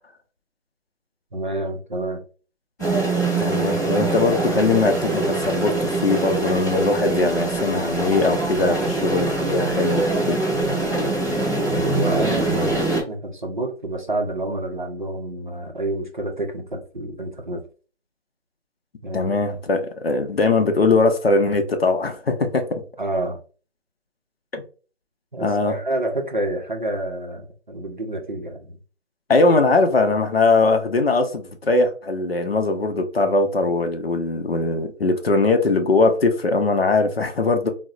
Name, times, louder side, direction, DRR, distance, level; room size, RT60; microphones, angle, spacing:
voice 1, 1.3-2.2 11.7-17.6 19.0-19.3 23.0-23.4 25.3-28.8, right 2 dB, 40° right, 0.5 m, -28 dB
sound 1, 2.8-13.0, right 2 dB, 15° left, 0.8 m, -23 dB
voice 2, 3.4-10.5 19.1-22.8 24.5-24.6 25.4-25.8 29.3-37.7, left 3 dB, 55° left, 0.6 m, -20 dB
3.8 x 2.0 x 2.3 m
figure-of-eight pair, 165°, 36 cm